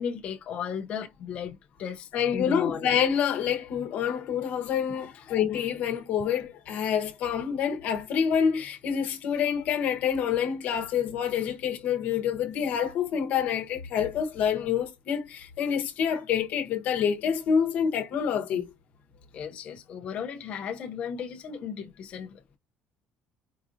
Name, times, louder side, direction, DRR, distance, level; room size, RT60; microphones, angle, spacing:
voice 1, 0.0-2.9 5.1-5.2 19.3-22.6, left 7 dB, 40° left, 0.4 m, -36 dB
voice 2, 2.1-18.7, left 8 dB, 55° left, 0.9 m, -27 dB
4.6 x 2.4 x 2.5 m
cardioid pair, 170°, 3 cm